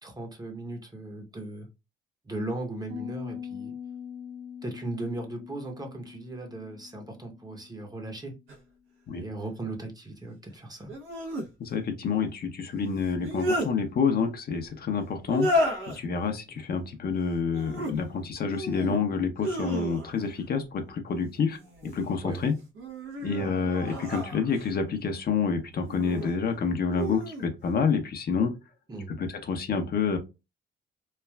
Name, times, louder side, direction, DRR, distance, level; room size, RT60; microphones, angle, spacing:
voice 1, 0.0-1.7 2.2-3.7 4.6-8.3 9.1-10.9 22.2-22.4 23.4-23.5 28.9-29.1, right 2 dB, 20° right, 0.8 m, -37 dB
Piano, 2.9-8.5, left 8 dB, 45° right, 1.3 m, -43 dB
sound 1, 8.5-8.6 10.9-11.5 13.0-13.7 15.3-16.0 17.5-18.0 18.5-19.0 19.4-20.3 21.5-22.1 22.7-24.8 25.8-26.3 26.9-27.5, equal, 85° right, 1.0 m, -32 dB
voice 2, 11.6-15.5 15.9-22.5 23.2-28.5 29.2-30.2, left 5 dB, 50° left, 0.6 m, -28 dB
3.2 x 2.3 x 2.2 m
cardioid pair, 90°, 20 cm